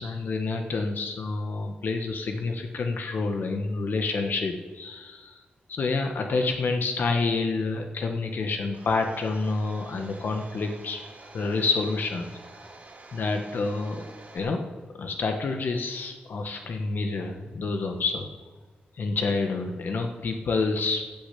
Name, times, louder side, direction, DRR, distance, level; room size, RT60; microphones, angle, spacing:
voice 1, 0.0-5.4 5.7-11.0 11.3-12.3 12.5-12.7 13.1-14.0 14.3-14.7 14.9-18.3 18.9-21.0, left 3 dB, 65° left, 5 dB, 1.4 m, -28 dB
Domestic sounds home sounds, 8.7-14.4, right 3 dB, 55° right, 2.8 m, -48 dB
14.0 x 6.8 x 8.4 m, 1.3 s
wide cardioid pair, 105°, 3 cm